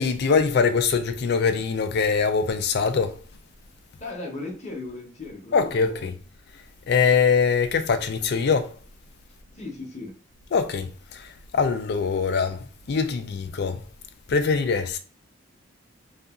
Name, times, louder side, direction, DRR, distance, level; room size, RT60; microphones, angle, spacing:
voice 1, 0.0-3.2 5.5-6.1 6.9-8.7 10.5-13.8 14.3-15.0, left 5 dB, 50° left, 0.3 m, -23 dB
voice 2, 4.0-6.1 9.5-10.2, left 2 dB, 35° left, 0.7 m, -37 dB
2.7 x 2.4 x 2.4 m
head